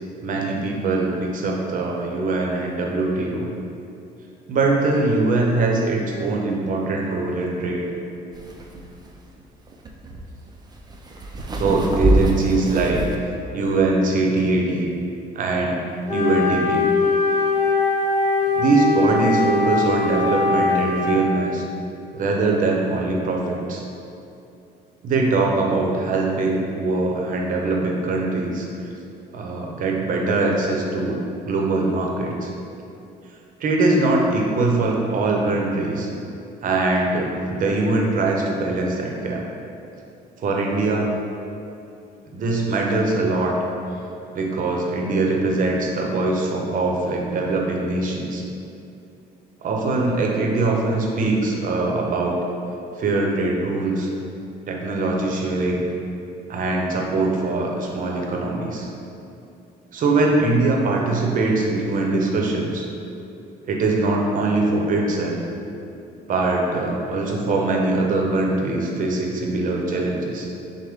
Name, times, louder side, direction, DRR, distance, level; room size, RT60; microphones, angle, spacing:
voice 1, 0.2-3.5 4.5-7.9 11.6-13.0 13.5-14.9 15.3-15.8 16.1-16.9 18.5-21.6 22.1-23.8 25.0-28.7 29.3-32.5 33.6-36.1 36.6-39.4 40.4-41.1 42.3-43.5 44.3-48.4 49.6-52.4 53.0-54.1 54.7-55.9 56.5-58.9 59.9-62.9 63.7-65.4 66.3-70.5, right 2 dB, 50° right, -1 dB, 0.8 m, -22 dB
sound 1, 8.3-13.2, right 1 dB, 25° right, 0.4 m, -25 dB
Wind instrument woodwind instrument, 16.1-21.3, left 3 dB, 45° left, 0.7 m, -21 dB
6.3 x 2.2 x 3.5 m, 2.7 s
cardioid pair, 110°, 17 cm